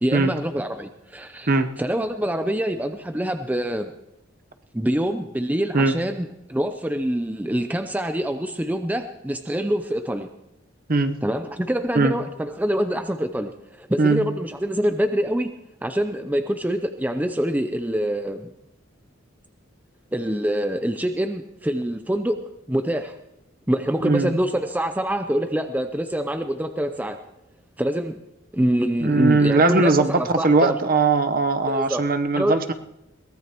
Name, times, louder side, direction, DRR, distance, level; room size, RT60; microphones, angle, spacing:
voice 1, 0.0-1.5 1.8-3.9 4.7-10.3 11.2-15.5 15.8-18.5 20.1-22.4 22.7-23.1 23.7-27.2 27.8-28.2 28.5-30.8 31.7-32.0 32.3-32.6, right 1 dB, 10° right, 7 dB, 0.6 m, -25 dB
voice 2, 24.0-24.4 29.0-32.7, right 3 dB, 45° right, 8 dB, 1.0 m, -20 dB
22.0 x 18.5 x 3.0 m, 0.87 s
head